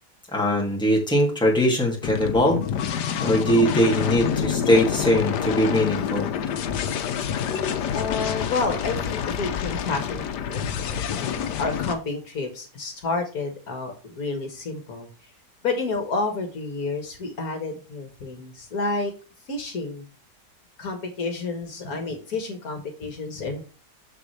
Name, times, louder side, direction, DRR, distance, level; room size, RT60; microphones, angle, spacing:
voice 1, 0.3-2.6 3.2-6.3, equal, 5° left, -2 dB, 2.2 m, -21 dB
sound 1, 2.0-11.9, left 8 dB, 85° left, 1.4 m, -27 dB
voice 2, 7.9-15.1 15.6-19.1 19.5-20.1 20.8-23.6, left 3 dB, 65° left, 5 dB, 1.9 m, -30 dB
6.9 x 6.9 x 3.2 m, 0.34 s
omnidirectional pair, 1.7 m